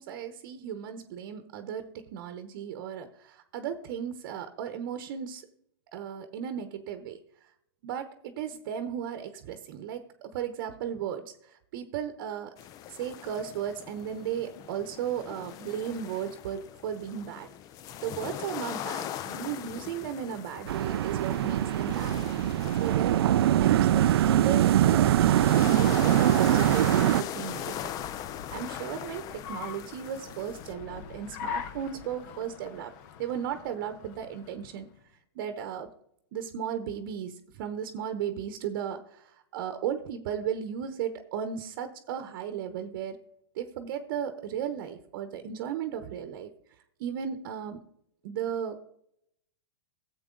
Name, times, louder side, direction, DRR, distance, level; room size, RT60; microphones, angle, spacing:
voice 1, 0.0-5.5 5.9-7.2 7.8-12.5 12.9-17.5 18.0-22.2 22.5-27.9 28.5-32.9 33.2-34.9 35.4-35.9 36.3-43.2 43.5-46.5 47.0-47.8 48.2-48.8, right 8 dB, 50° right, 9 dB, 0.9 m, -35 dB
sound 1, 12.6-30.7, left 10 dB, 25° left, 0.5 m, -40 dB
sound 2, 20.7-27.2, right 12 dB, 70° right, 0.4 m, -23 dB
Car, 25.8-35.0, left 8 dB, 45° left, 0.9 m, -44 dB
14.0 x 7.9 x 3.8 m, 0.75 s
hypercardioid pair, 135°, 13 cm